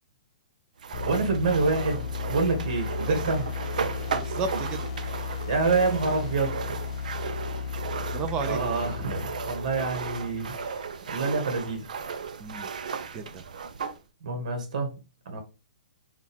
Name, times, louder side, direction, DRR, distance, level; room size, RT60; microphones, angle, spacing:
sound 1, 0.8-14.0, right 6 dB, 80° right, 0.5 m, -35 dB
sound 2, 0.9-10.7, left 6 dB, 45° left, 0.4 m, -35 dB
voice 1, 1.0-3.5 5.5-6.6 8.4-10.8 11.1-11.9 14.2-14.9 15.2-15.4, right 3 dB, 60° right, 1.5 m, -27 dB
voice 2, 4.1-4.9 8.1-8.6 12.4-12.7 13.1-13.4, right 5 dB, 20° right, 0.5 m, -33 dB
3.8 x 2.4 x 4.2 m
hypercardioid pair, 160°, 4 cm